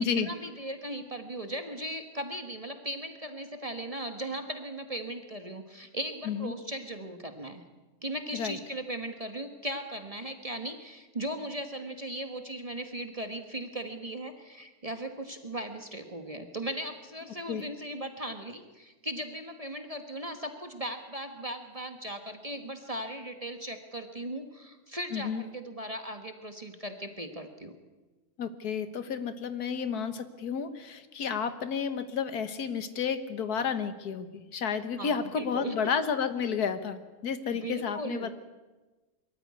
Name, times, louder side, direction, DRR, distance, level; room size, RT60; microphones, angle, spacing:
voice 1, 0.2-7.6 8.0-27.7 34.9-35.7 37.5-38.3, right 1 dB, 25° right, 6 dB, 1.3 m, -38 dB
voice 2, 25.1-25.4 28.4-38.3, left 6 dB, 90° left, 11 dB, 1.8 m, -31 dB
23.5 x 13.5 x 9.5 m, 1.2 s
omnidirectional pair, 1.6 m